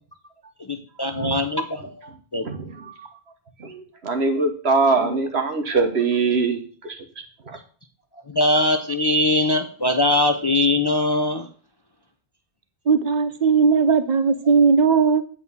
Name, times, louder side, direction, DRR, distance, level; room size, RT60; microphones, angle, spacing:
voice 1, 0.6-2.5 8.3-11.5, left 1 dB, 30° left, 6 dB, 0.6 m, -21 dB
voice 2, 2.4-3.1 3.6-7.0 7.5-7.6, right 4 dB, 75° right, 5 dB, 1.6 m, -23 dB
voice 3, 12.9-15.2, right 5 dB, 45° right, 11 dB, 0.9 m, -17 dB
8.5 x 4.5 x 7.0 m, 0.42 s
omnidirectional pair, 1.1 m